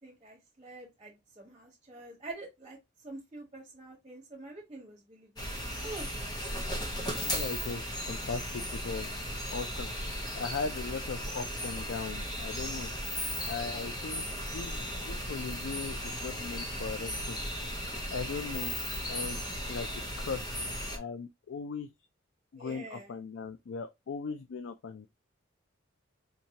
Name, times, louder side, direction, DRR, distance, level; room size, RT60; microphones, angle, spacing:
voice 1, 0.0-5.5 5.8-6.5 22.6-23.2, right 2 dB, 25° right, 1.2 m, -47 dB
sound 1, 5.4-21.0, equal, 20° left, 0.7 m, -36 dB
voice 2, 7.2-9.1 9.5-9.9 10.4-12.9 13.5-14.2 14.5-17.4 18.1-18.8 19.1-19.4 19.7-19.9 20.2-20.5 20.9-21.9 22.5-25.1, left 5 dB, 70° left, 0.4 m, -38 dB
4.4 x 2.7 x 2.8 m
head